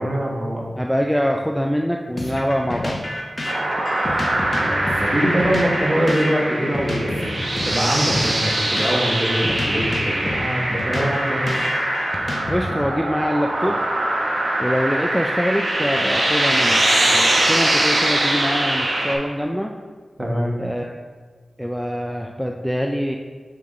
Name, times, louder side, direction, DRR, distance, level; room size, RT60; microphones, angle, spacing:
voice 1, 0.0-0.6 4.6-11.5 20.2-20.5, equal, 30° right, -3 dB, 1.4 m, -23 dB
voice 2, 0.8-3.0 12.5-13.8 14.6-19.7 20.6-21.0 21.6-23.2, equal, ahead, 2 dB, 0.3 m, -24 dB
sound 1, 2.2-13.0, left 1 dB, 35° left, 1.0 m, -29 dB
sound 2, 3.4-19.1, right 1 dB, 55° right, 1.2 m, -22 dB
7.5 x 3.7 x 3.6 m, 1.5 s
wide cardioid pair, 70°, 0 cm